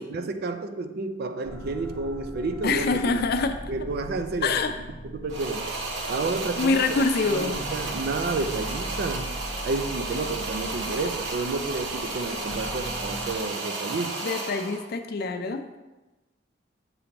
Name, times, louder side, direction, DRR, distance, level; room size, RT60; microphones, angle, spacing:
voice 1, 0.0-3.0 3.7-4.6 5.0-5.7 6.1-6.8 7.3-9.4 9.6-14.2, right 3 dB, 55° right, 8 dB, 0.4 m, -30 dB
sound 1, 1.4-13.4, equal, 5° left, 0.6 m, -40 dB
voice 2, 2.6-3.6 4.4-4.7 6.6-7.6 14.2-15.6, left 4 dB, 55° left, 8 dB, 0.4 m, -25 dB
sound 2, 5.3-14.9, right 3 dB, 75° right, 0.9 m, -33 dB
6.8 x 2.9 x 5.1 m, 1.1 s
head